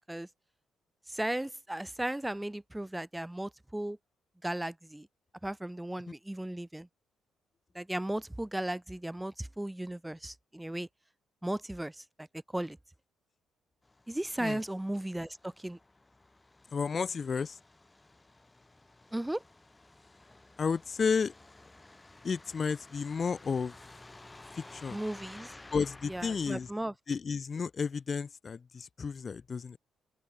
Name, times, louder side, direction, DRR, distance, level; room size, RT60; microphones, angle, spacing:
voice 1, 1.1-4.0 4.4-5.1 5.4-6.9 7.7-10.9 11.4-12.3 12.5-12.8 14.1-15.8 19.1-19.4 24.9-25.5 26.1-26.9, right 1 dB, 10° right, 1.2 m, -36 dB
Truck, 13.8-26.7, left 2 dB, 15° left, 2.9 m, -54 dB
voice 2, 16.7-17.6 20.6-21.3 22.2-23.7 24.5-25.0 25.7-26.7 27.1-29.8, left 5 dB, 40° left, 1.1 m, -32 dB
open air
cardioid pair, 90°, 0 cm